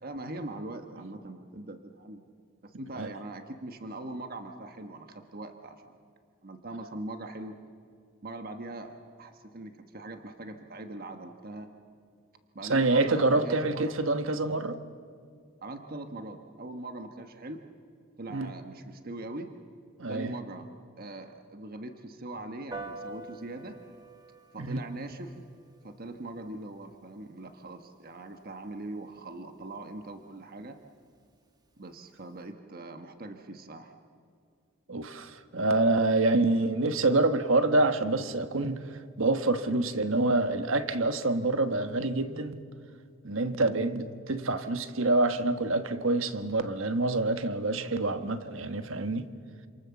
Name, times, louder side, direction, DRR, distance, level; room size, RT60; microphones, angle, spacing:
voice 1, 0.0-2.3 2.6-6.0 6.4-7.6 8.2-11.7 12.5-13.9 15.6-17.6 18.2-19.5 20.1-20.7 21.0-23.8 24.5-25.4 25.8-30.8 31.8-33.9, right 2 dB, 45° right, 1.3 m, -41 dB
voice 2, 12.7-14.8 18.3-18.5 20.0-20.3 24.6-24.8 34.9-38.8 39.2-42.6 43.2-49.3, right 2 dB, 70° right, 1.4 m, -26 dB
Piano, 22.7-32.5, right 2 dB, 20° right, 1.8 m, -50 dB
28.0 x 27.0 x 7.1 m
head